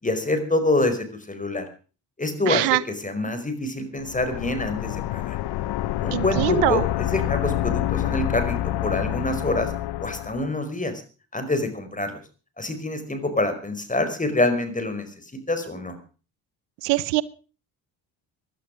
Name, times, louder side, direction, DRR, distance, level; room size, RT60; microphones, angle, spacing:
voice 1, 0.0-1.6 2.2-5.4 6.0-9.7 10.0-11.0 11.3-12.2 12.6-16.0, left 2 dB, 20° left, 9 dB, 4.9 m, -26 dB
voice 2, 2.5-2.8 6.1-6.8 16.8-17.2, right 19 dB, 85° right, 19 dB, 0.8 m, -22 dB
sound 1, 4.0-10.5, left 14 dB, 70° left, 0.9 m, -27 dB
17.0 x 11.5 x 6.4 m, 0.37 s
supercardioid pair, 65°, 41 cm